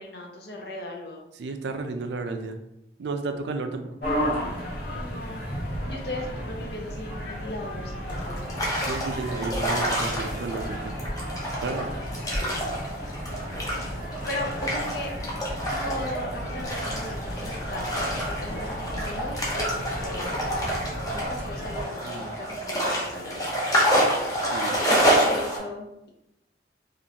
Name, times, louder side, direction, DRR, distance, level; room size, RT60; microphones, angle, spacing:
voice 1, 0.0-1.2 4.9-5.5 5.9-8.4 14.3-15.1 15.7-20.8 21.1-23.6 25.1-26.1, left 1 dB, 65° left, 0 dB, 0.7 m, -37 dB
voice 2, 1.4-2.6 3.0-4.0 8.8-10.9 11.6-11.9 22.0-22.3 24.5-24.8, right 3 dB, 80° right, 7 dB, 0.4 m, -32 dB
sound 1, 4.0-21.8, equal, 85° left, 1.5 m, -34 dB
sound 2, 8.1-25.6, equal, 20° left, 0.7 m, -28 dB
3.7 x 2.4 x 2.8 m, 0.86 s
head